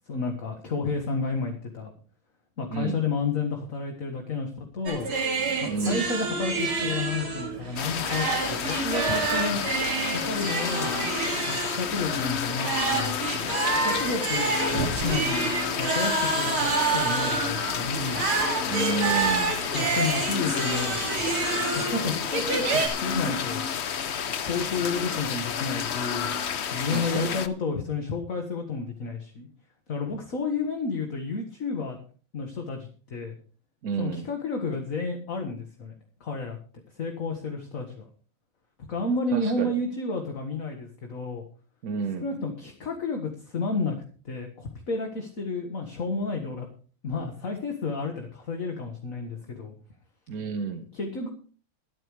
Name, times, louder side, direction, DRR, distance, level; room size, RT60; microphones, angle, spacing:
voice 1, 0.1-1.9 2.6-5.1 5.6-9.7 10.1-10.9 11.5-14.5 14.8-15.5 15.8-18.2 19.7-21.3 21.7-23.7 24.4-26.3 26.7-29.5 29.9-32.0 32.3-33.3 34.0-35.9 36.2-36.6 36.9-38.0 38.9-41.4 42.2-44.0 44.3-46.7 47.0-49.7 50.9-51.3, left 4 dB, 40° left, 3 dB, 1.9 m, -31 dB
voice 2, 2.7-3.1 5.6-6.1 18.7-19.6 26.9-27.4 33.8-34.3 39.3-39.7 41.8-42.3 50.3-50.9, right 5 dB, 50° right, 6 dB, 1.3 m, -30 dB
sound 1, 4.9-22.9, right 4 dB, 80° right, 3.4 m, -28 dB
sound 2, 7.8-27.5, left 8 dB, 75° left, 0.6 m, -31 dB
23.5 x 9.0 x 3.3 m, 0.40 s
omnidirectional pair, 2.3 m